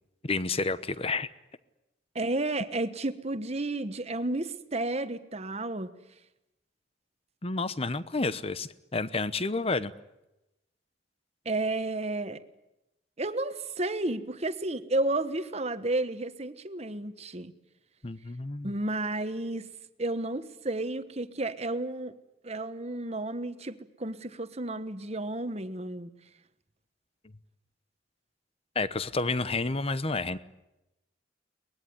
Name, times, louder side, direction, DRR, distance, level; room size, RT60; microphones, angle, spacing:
voice 1, 0.2-1.3 7.4-9.9 18.0-18.7 28.7-30.4, left 3 dB, 30° left, 15 dB, 1.0 m, -30 dB
voice 2, 2.1-5.9 11.4-12.4 13.2-17.5 18.6-19.7 20.0-22.2 22.4-26.1, right 2 dB, 35° right, 11 dB, 1.3 m, -32 dB
23.0 x 20.0 x 9.6 m, 0.93 s
head